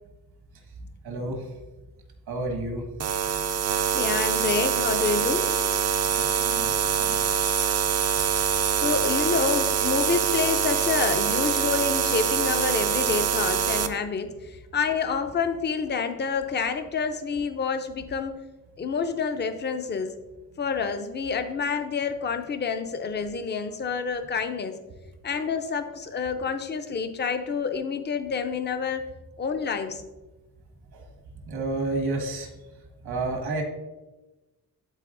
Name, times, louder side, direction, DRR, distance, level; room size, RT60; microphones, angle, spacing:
voice 1, 1.0-1.6 2.3-2.9 6.1-7.2 30.9-31.1 31.4-32.5 33.0-33.6, right 2 dB, 85° right, 3 dB, 1.6 m, -31 dB
sound 1, 3.0-13.9, right 8 dB, 45° right, 0.4 m, -24 dB
voice 2, 3.9-5.5 8.8-18.4 18.8-20.2 20.6-24.8 25.2-29.1 29.4-30.0, left 5 dB, 30° left, 8 dB, 0.5 m, -28 dB
12.5 x 4.2 x 2.5 m, 1.1 s
wide cardioid pair, 160°, 38 cm